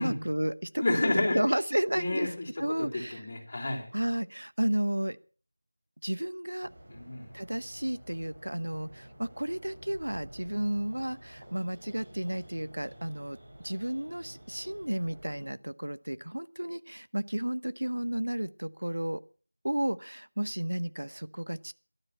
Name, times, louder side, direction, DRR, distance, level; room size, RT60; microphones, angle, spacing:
voice 1, 0.0-2.3 2.6-3.2 3.9-5.2 6.0-6.7 7.3-13.4 13.6-19.2 19.6-21.7, right 1 dB, 80° right, 15 dB, 1.0 m, -32 dB
voice 2, 0.8-1.4 1.9-2.5 2.8-3.9 6.9-7.3, left 2 dB, 25° left, -4 dB, 3.8 m, -30 dB
sound 1, 6.6-15.5, right 1 dB, 35° right, 7.0 m, -51 dB
14.5 x 12.0 x 5.7 m, 0.38 s
figure-of-eight pair, 175°, 0 cm